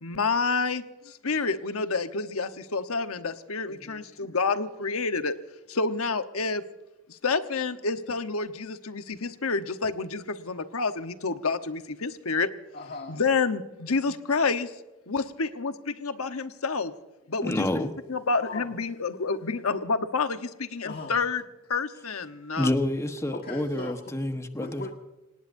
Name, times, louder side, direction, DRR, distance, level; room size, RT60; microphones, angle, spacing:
voice 1, 0.0-5.3 5.7-6.6 7.1-12.5 13.1-14.7 15.1-16.9 17.3-21.4 21.7-22.7, left 4 dB, 85° left, 1.1 m, -29 dB
voice 2, 3.7-4.3 12.7-13.2 17.7-17.8 18.4-18.7 20.8-21.2 23.3-24.1 24.6-24.9, left 2 dB, 45° left, 1.7 m, -39 dB
voice 3, 17.4-17.9 22.6-24.8, left 1 dB, 15° left, 1.2 m, -28 dB
26.5 x 19.0 x 2.7 m
head